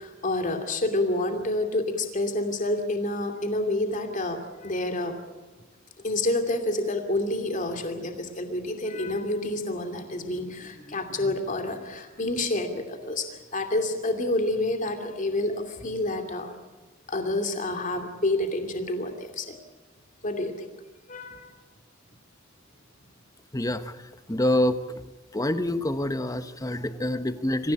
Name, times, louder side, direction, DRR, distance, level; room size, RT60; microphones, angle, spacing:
voice 1, 0.0-5.2 6.0-13.3 13.5-16.5 17.1-19.6 20.2-20.7 21.1-21.4, left 2 dB, 40° left, 6 dB, 2.7 m, -28 dB
voice 2, 23.5-23.9 24.3-24.8 25.3-27.7, left 1 dB, 20° left, 10 dB, 1.1 m, -26 dB
26.0 x 15.5 x 8.7 m, 1.3 s
head